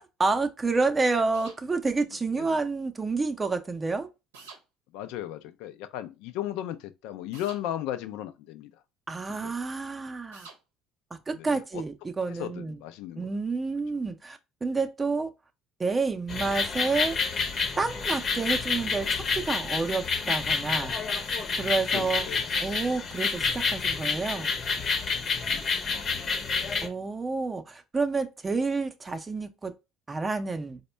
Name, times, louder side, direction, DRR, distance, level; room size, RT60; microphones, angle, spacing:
voice 1, 0.0-4.1 9.1-10.5 11.3-12.7 13.2-15.3 15.8-17.2 17.8-20.9 21.6-22.3 22.6-24.5 26.8-29.7 30.1-30.8, right 4 dB, 25° right, 0.5 m, -29 dB
sound 1, 1.3-1.6 4.3-4.6 7.3-7.6 10.3-10.6, right 4 dB, 90° right, 0.7 m, -47 dB
voice 2, 4.9-8.8 9.3-9.5 11.3-11.8 12.3-13.3 21.9-22.6 25.2-26.3, left 12 dB, 70° left, 0.4 m, -37 dB
sound 2, 16.3-26.9, left 5 dB, 45° left, 0.7 m, -29 dB
4.1 x 2.1 x 3.2 m
hypercardioid pair, 65°, 0 cm